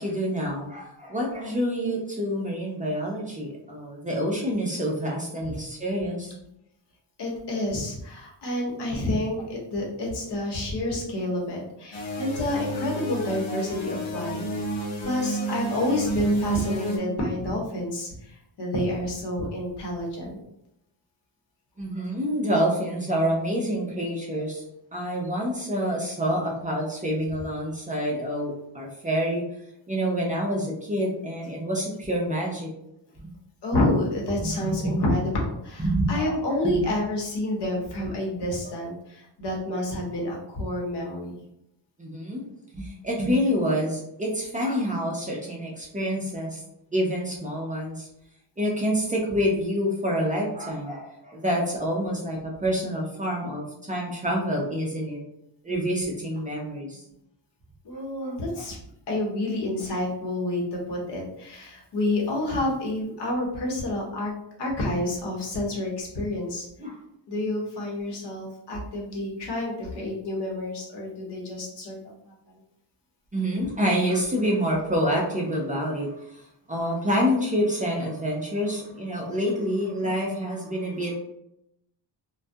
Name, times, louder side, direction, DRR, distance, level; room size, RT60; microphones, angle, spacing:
voice 1, 0.0-6.3 21.8-24.6 24.9-29.4 29.9-32.7 34.4-35.0 35.8-37.0 42.0-42.5 42.7-46.6 46.9-48.1 48.6-55.2 55.6-57.0 58.2-58.6 66.8-66.9 73.3-76.1 76.7-81.2, equal, 20° right, -2 dB, 0.4 m, -27 dB
voice 2, 7.2-14.4 15.0-20.4 33.6-41.4 57.8-58.8 59.1-64.3 64.6-66.7 67.3-72.0, left 1 dB, 60° left, -2 dB, 0.9 m, -29 dB
sound 1, 11.9-17.0, right 2 dB, 85° left, 0.8 m, -30 dB
2.3 x 2.2 x 2.6 m, 0.78 s
wide cardioid pair, 125°, 46 cm